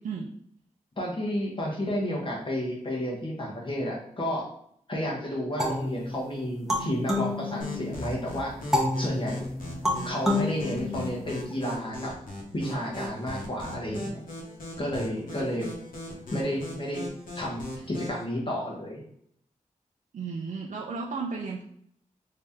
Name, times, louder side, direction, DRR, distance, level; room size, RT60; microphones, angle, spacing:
voice 1, 1.0-4.5 4.9-8.5 9.0-9.4 10.0-12.1 12.5-14.2 14.8-15.7 16.3-17.0 17.3-19.0, equal, 35° left, -3 dB, 1.2 m, -31 dB
sound 1, 5.6-8.1 8.7-11.5, left 1 dB, 5° right, 0.9 m, -29 dB
sound 2, 7.6-18.2, left 1 dB, 80° left, 1.0 m, -39 dB
voice 2, 20.1-21.6, right 4 dB, 65° right, -1 dB, 0.4 m, -33 dB
3.2 x 2.8 x 3.5 m, 0.69 s
wide cardioid pair, 75°, 14 cm